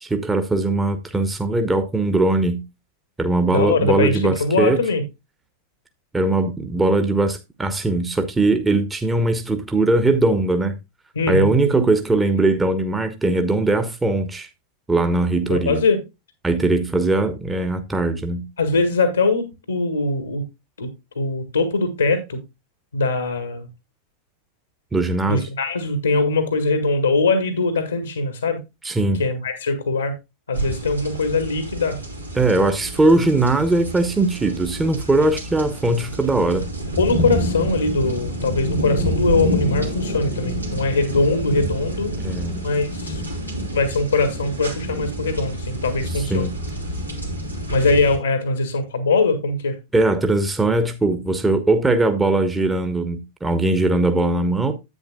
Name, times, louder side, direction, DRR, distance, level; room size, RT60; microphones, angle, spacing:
voice 1, 0.0-2.6 3.2-4.8 6.1-10.7 11.3-14.5 14.9-15.8 16.4-18.5 24.9-25.4 28.8-29.2 32.4-36.6 42.2-42.6 46.1-46.6 49.9-54.7, right 2 dB, 10° right, 1.1 m, -20 dB
voice 2, 3.5-5.0 11.1-11.5 15.4-16.0 18.6-20.4 20.8-20.9 21.1-22.4 22.9-23.7 25.2-28.6 29.1-30.1 30.5-32.0 37.0-42.1 42.6-43.2 43.7-46.5 47.7-49.8, left 3 dB, 75° left, 1.6 m, -21 dB
sound 1, 30.5-48.2, equal, 90° right, 2.7 m, -28 dB
11.0 x 8.9 x 2.3 m
figure-of-eight pair, 90°, 0 cm